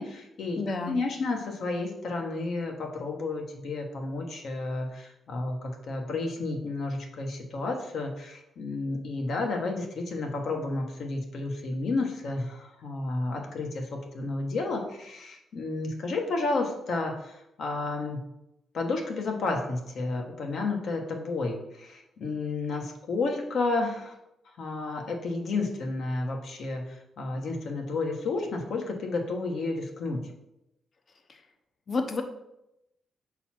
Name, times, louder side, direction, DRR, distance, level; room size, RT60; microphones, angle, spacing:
voice 1, 0.0-0.6 0.9-18.2 18.7-24.1 24.6-30.2, left 3 dB, 65° left, 2 dB, 1.2 m, -31 dB
voice 2, 0.6-1.0 31.3-31.4 31.9-32.2, left 3 dB, 45° left, 6 dB, 0.8 m, -30 dB
5.9 x 4.0 x 4.4 m, 0.86 s
cardioid pair, 90°, 0 cm